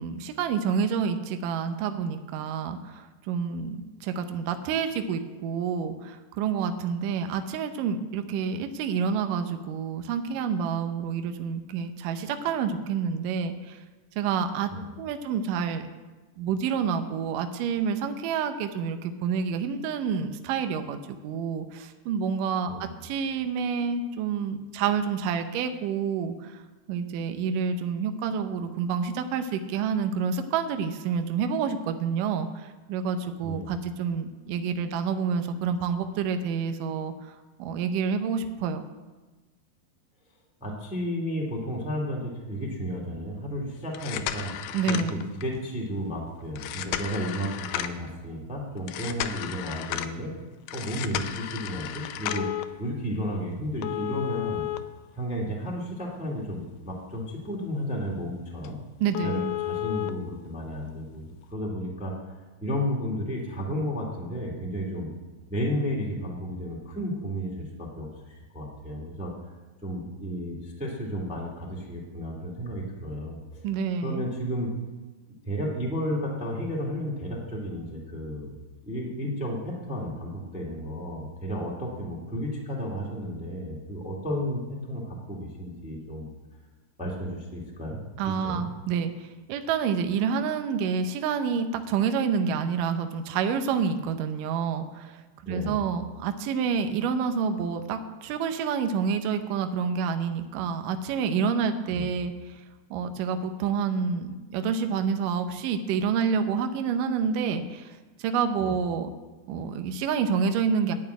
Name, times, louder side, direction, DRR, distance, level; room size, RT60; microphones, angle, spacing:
voice 1, 0.0-13.8 14.2-14.7 15.0-15.9 16.4-26.6 26.9-38.8 44.7-45.3 59.0-59.5 73.6-74.3 88.2-102.5 102.9-109.1 109.5-110.9, right 6 dB, 80° right, 8 dB, 1.9 m, -28 dB
voice 2, 33.4-33.7 40.6-44.5 44.9-50.3 50.7-52.5 52.8-54.6 55.1-58.8 59.2-62.3 62.6-65.1 65.5-69.3 69.8-73.6 74.0-74.7 75.4-78.5 78.8-86.3 87.0-88.7 95.4-95.9 101.9-102.1 108.6-108.7, equal, 5° right, -3 dB, 1.1 m, -33 dB
sound 1, 43.8-45.6 46.6-48.1 48.9-50.1 50.7-52.6 53.8-55.7 56.1-56.2 56.8-56.9 57.3-57.5 57.7-57.8 58.2-58.3 58.6-58.7 59.1-60.1 61.2-61.3, left 13 dB, 85° left, 2.5 m, -33 dB
11.0 x 7.1 x 9.3 m, 1.2 s
omnidirectional pair, 4.7 m